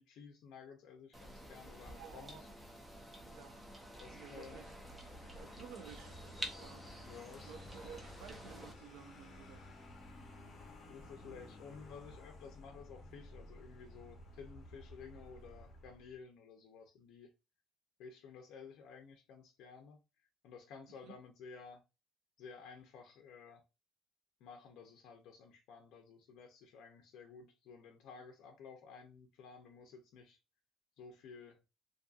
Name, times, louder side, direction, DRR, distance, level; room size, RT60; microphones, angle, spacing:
voice 1, 0.0-2.5 4.0-4.7 7.0-7.5 10.9-17.3 18.0-20.0 20.4-21.8 22.4-23.6 24.4-30.4 31.0-31.6, left 5 dB, 70° left, 0.4 m, -54 dB
sound 1, 1.1-8.7, right 1 dB, 10° right, 0.4 m, -50 dB
voice 2, 1.9-2.5 3.2-3.7 4.1-4.7 5.4-6.2 6.5-6.8 7.4-9.6 21.0-21.2, right 8 dB, 90° right, 0.3 m, -54 dB
Vehicle, 3.9-16.2, left 1 dB, 35° left, 0.7 m, -55 dB
2.5 x 2.5 x 2.3 m
cardioid pair, 170°, 0 cm